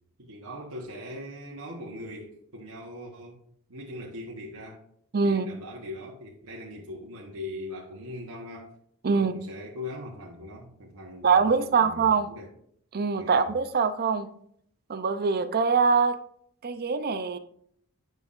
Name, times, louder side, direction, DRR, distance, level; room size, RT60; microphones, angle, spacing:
voice 1, 0.2-3.4 3.7-4.8 5.2-8.7 9.1-12.5 13.1-13.5, left 1 dB, 70° right, -2 dB, 1.1 m, -40 dB
voice 2, 5.1-5.5 9.0-9.3 11.2-12.3 12.9-14.3 14.9-16.2 16.6-17.4, right 5 dB, 45° right, 10 dB, 0.5 m, -23 dB
9.2 x 5.3 x 2.5 m, 0.65 s
head